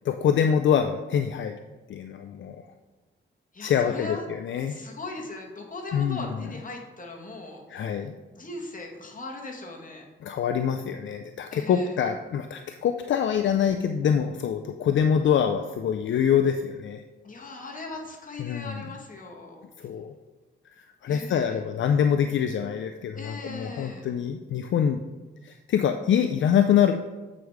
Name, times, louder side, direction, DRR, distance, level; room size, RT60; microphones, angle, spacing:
voice 1, 0.0-1.6 1.9-2.6 3.6-4.8 5.9-6.3 7.7-8.1 10.2-17.0 18.4-18.9 19.8-20.1 20.7-25.0 25.4-27.0, left 8 dB, 75° left, 7 dB, 0.4 m, -25 dB
voice 2, 3.5-4.3 4.7-7.9 8.3-10.1 11.5-12.0 17.2-19.6 21.1-21.6 23.1-24.1, left 2 dB, 45° left, 0 dB, 1.8 m, -39 dB
8.2 x 4.9 x 4.7 m, 1.2 s
cardioid pair, 80°, 20 cm